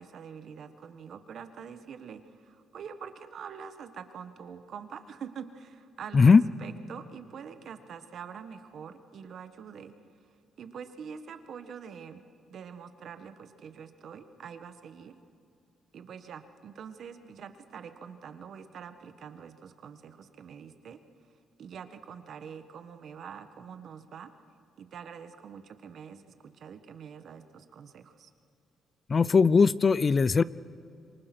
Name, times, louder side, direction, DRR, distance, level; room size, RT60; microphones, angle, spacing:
voice 1, 0.0-10.0 10.6-12.2 12.5-15.2 15.9-21.0 21.6-24.3 24.8-28.3, right 7 dB, 60° right, 9 dB, 1.5 m, -45 dB
voice 2, 29.1-30.4, left 5 dB, 35° left, 19 dB, 0.5 m, -19 dB
27.0 x 23.5 x 6.2 m, 2.5 s
cardioid pair, 90°, 0 cm